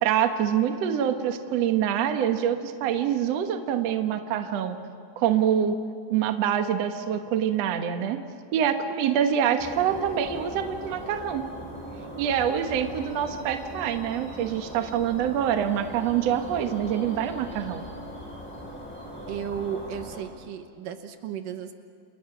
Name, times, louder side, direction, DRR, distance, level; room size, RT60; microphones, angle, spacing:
voice 1, 0.0-4.8 5.2-5.8 6.1-8.2 8.5-11.5 12.2-17.8, right 9 dB, 60° right, 7 dB, 2.1 m, -25 dB
sound 1, 9.6-20.2, equal, 5° left, 5.5 m, -40 dB
voice 2, 19.3-21.7, right 8 dB, 75° right, 8 dB, 2.6 m, -34 dB
29.5 x 29.5 x 6.0 m, 2.3 s
omnidirectional pair, 4.0 m